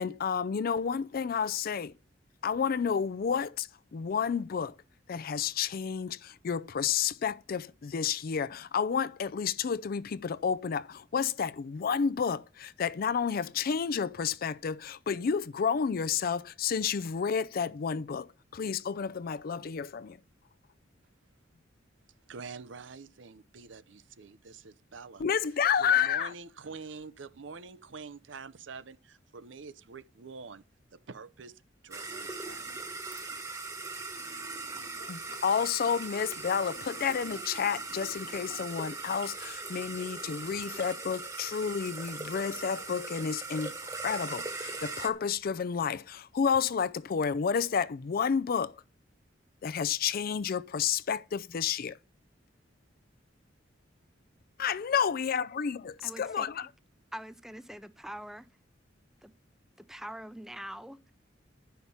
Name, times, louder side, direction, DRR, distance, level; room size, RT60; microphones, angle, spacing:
voice 1, 0.0-1.9 2.4-4.8 5.1-18.3 18.5-20.2 25.2-26.3 35.0-48.8 49.6-52.0 54.6-55.8 56.2-56.7, left 7 dB, 50° left, 0.4 m, -30 dB
voice 2, 22.3-25.2 25.8-30.6 30.9-32.7, right 4 dB, 75° right, 0.7 m, -46 dB
sound 1, 31.9-45.1, right 3 dB, 15° right, 1.2 m, -40 dB
voice 3, 56.0-56.5 57.1-58.5 59.2-59.3 59.8-61.1, equal, ahead, 0.6 m, -43 dB
11.0 x 5.7 x 7.0 m
head